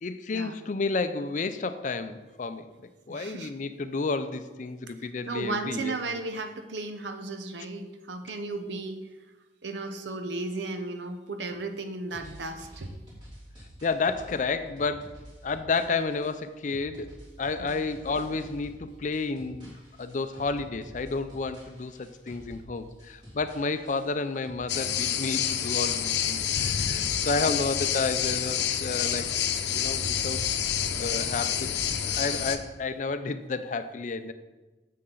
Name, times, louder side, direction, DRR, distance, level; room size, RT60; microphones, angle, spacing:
voice 1, 0.0-5.9 13.8-15.2 15.4-17.1 17.4-19.7 20.0-29.3 29.7-30.5 31.0-34.3, left 4 dB, 45° left, 11 dB, 0.4 m, -31 dB
voice 2, 3.1-3.5 5.2-9.0 9.6-13.0 17.6-17.9 26.6-26.9 27.5-27.6, right 3 dB, 85° right, 7 dB, 0.8 m, -35 dB
sound 1, 12.1-26.3, equal, 25° right, 3.3 m, -49 dB
sound 2, 24.7-32.6, left 9 dB, 80° left, 0.7 m, -28 dB
9.8 x 7.5 x 3.9 m, 1.2 s
head